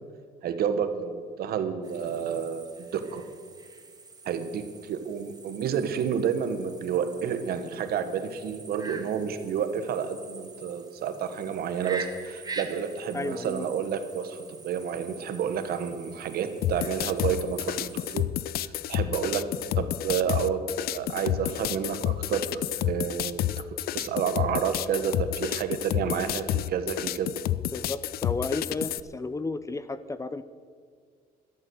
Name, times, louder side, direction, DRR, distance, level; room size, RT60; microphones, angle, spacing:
voice 1, 0.4-3.2 4.2-18.3 18.9-19.4 19.8-20.6 20.9-23.4 23.9-27.3, right 7 dB, 65° right, 9 dB, 1.4 m, -30 dB
sound 1, 1.8-18.2, right 4 dB, 25° right, 1.5 m, -45 dB
voice 2, 13.1-13.7 27.7-30.4, left 3 dB, 20° left, 14 dB, 0.6 m, -33 dB
sound 2, 16.6-29.0, left 13 dB, 65° left, 0.5 m, -30 dB
13.0 x 12.5 x 6.4 m, 2.1 s
cardioid pair, 110°, 17 cm